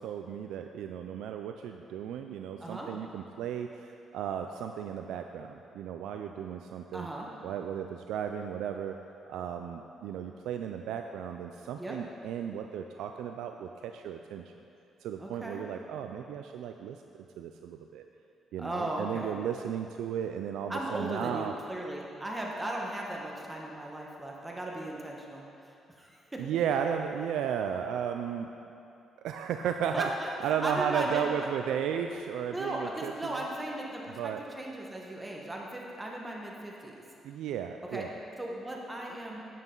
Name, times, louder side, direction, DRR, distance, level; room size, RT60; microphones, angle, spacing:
voice 1, 0.0-7.1 7.4-9.0 9.3-14.4 15.0-17.0 17.4-18.1 18.5-21.5 26.4-28.5 29.2-30.1 30.4-33.5 34.2-34.4 37.2-38.1, right 8 dB, 85° right, 5 dB, 0.4 m, -34 dB
voice 2, 2.6-2.9 6.9-7.3 11.8-12.0 15.2-15.6 18.6-19.4 20.7-25.4 25.9-26.6 29.9-31.3 32.5-36.9 37.9-38.1 38.4-39.4, right 1 dB, 15° right, -1 dB, 1.3 m, -37 dB
9.5 x 9.2 x 3.9 m, 2.7 s
cardioid pair, 90°, 0 cm